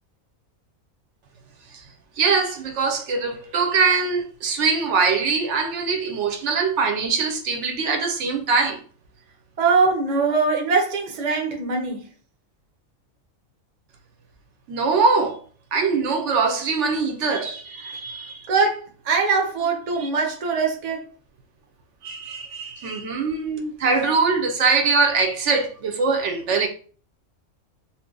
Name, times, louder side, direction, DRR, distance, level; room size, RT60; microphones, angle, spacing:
voice 1, 2.2-8.8 14.7-15.4 15.7-18.4 20.0-20.1 22.0-26.7, right 4 dB, 65° right, 0.8 m, -22 dB
voice 2, 9.6-12.0 18.5-21.0, right 4 dB, 40° right, 0.6 m, -22 dB
2.7 x 2.4 x 3.7 m
omnidirectional pair, 1.4 m